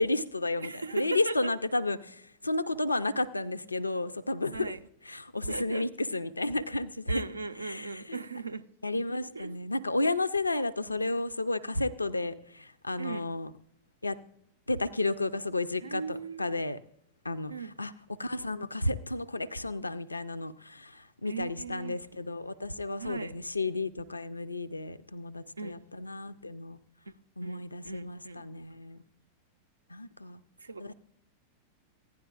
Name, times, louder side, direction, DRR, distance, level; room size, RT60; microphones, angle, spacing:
voice 1, 0.0-4.7 5.1-7.2 7.6-8.2 8.8-13.5 14.0-14.2 14.7-16.8 17.2-17.5 17.8-17.9 18.2-26.8 27.4-29.0 29.9-30.4 30.8-30.9, left 2 dB, 80° left, 0.4 m, -32 dB
voice 2, 0.6-1.5 4.5-4.8 5.5-5.9 7.1-8.6 9.2-9.5 13.0-13.3 15.8-16.5 17.5-17.8 21.3-22.0 23.0-23.4 25.6-25.9 27.1-27.2 27.4-28.5 30.6-30.9, right 4 dB, 80° right, 0.4 m, -38 dB
15.5 x 10.5 x 2.3 m
figure-of-eight pair, 90°, 0 cm